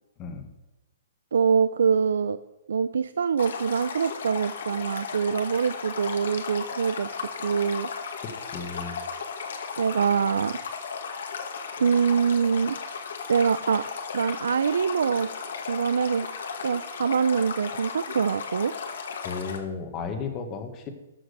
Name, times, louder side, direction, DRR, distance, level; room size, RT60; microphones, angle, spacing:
voice 1, 1.3-2.4 2.7-7.9 9.8-10.6 11.8-12.8 13.3-13.8 14.1-15.3 15.7-16.3 16.6-18.7, right 6 dB, 85° right, 13 dB, 0.4 m, -24 dB
Stream, 3.4-19.6, left 5 dB, 70° left, 1.9 m, -35 dB
voice 2, 8.2-9.0 19.2-20.9, left 5 dB, 20° left, 6 dB, 1.4 m, -34 dB
13.5 x 6.1 x 6.7 m, 1.0 s
hypercardioid pair, 170°, 0 cm